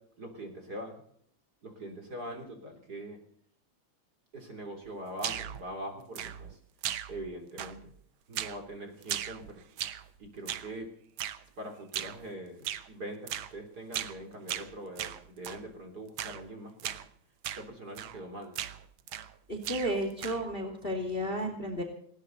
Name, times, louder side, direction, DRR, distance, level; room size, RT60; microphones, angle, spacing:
voice 1, 0.2-1.0 1.6-3.2 4.3-6.6 7.1-7.9 8.3-9.6 10.2-10.9 11.6-16.9 17.5-18.6, right 1 dB, 30° right, 4 dB, 3.7 m, -43 dB
sound 1, 5.2-5.6 6.1-6.6 6.8-7.3 7.6-8.0 8.3-8.6 9.0-10.1 10.5-10.7 11.2-11.4 11.9-12.2 12.6-12.9 13.3-13.5 13.9-14.2 14.5-15.6 16.2-16.4 16.8-17.1 17.4-17.7 18.0-18.2 18.5-19.4 19.6-20.5, right 11 dB, 70° right, 1.2 m, -37 dB
voice 2, 19.5-21.8, equal, 20° left, 5 dB, 2.6 m, -32 dB
19.0 x 18.0 x 4.1 m, 0.64 s
omnidirectional pair, 3.4 m